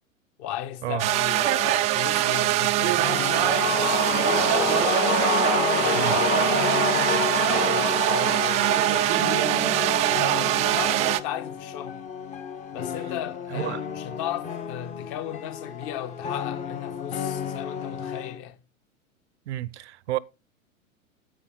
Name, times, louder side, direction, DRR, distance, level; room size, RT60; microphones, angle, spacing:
voice 1, 0.4-5.0 5.8-12.0 12.7-18.6, left 11 dB, 40° left, 1.4 m, -36 dB
sound 1, 1.0-11.2, right 15 dB, 20° right, 0.4 m, -23 dB
sound 2, 3.0-9.1, left 9 dB, 70° left, 0.7 m, -27 dB
sound 3, 3.0-18.4, left 7 dB, 20° left, 0.8 m, -35 dB
voice 2, 13.5-13.8 19.5-20.2, right 15 dB, 55° right, 0.7 m, -31 dB
9.9 x 8.3 x 3.8 m
figure-of-eight pair, 100°, 40 cm